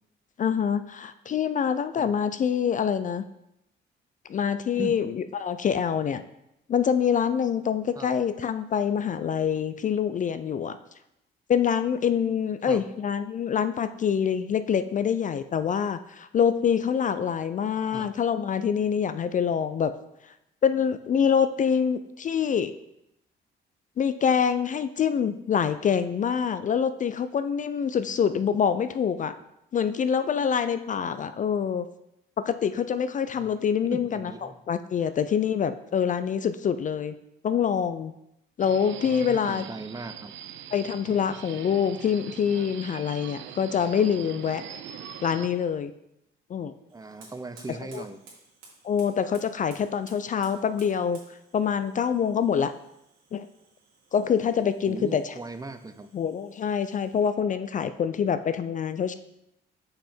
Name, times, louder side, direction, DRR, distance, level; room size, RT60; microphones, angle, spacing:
voice 1, 0.4-3.2 4.3-6.2 6.7-10.8 11.5-19.9 20.2-20.3 20.6-22.7 24.0-29.3 29.7-31.9 32.5-37.1 37.4-38.1 38.6-39.6 40.7-44.6 45.2-45.9 46.5-46.7 47.9-48.0 48.8-51.2 51.5-52.7 53.3-53.5 54.1-55.3 56.1-59.1, left 7 dB, 40° left, 12 dB, 0.4 m, -25 dB
voice 2, 33.9-34.6 39.0-40.3 46.9-48.2 54.9-56.1, right 3 dB, 20° right, 10 dB, 0.5 m, -38 dB
Subway metro underground, 38.6-45.5, right 10 dB, 70° right, 0.5 m, -42 dB
Fire, 46.9-57.4, right 3 dB, 85° right, 2.1 m, -56 dB
5.6 x 5.5 x 4.3 m, 0.83 s
cardioid pair, 90°, 20 cm